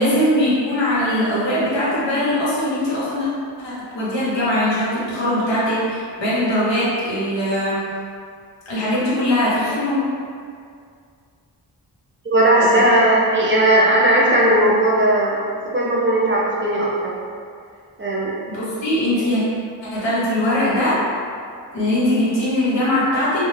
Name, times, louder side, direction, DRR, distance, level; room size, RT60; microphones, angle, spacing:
voice 1, 0.0-3.3 3.6-7.8 8.7-10.0 12.7-12.8 18.5-19.4 19.9-21.0 21.7-23.4, left 1 dB, 85° left, -9 dB, 1.0 m, -21 dB
voice 2, 12.2-15.4 15.7-17.1 18.0-18.3, right 1 dB, 30° right, -6 dB, 0.4 m, -17 dB
2.2 x 2.1 x 3.1 m, 2.2 s
wide cardioid pair, 145°, 43 cm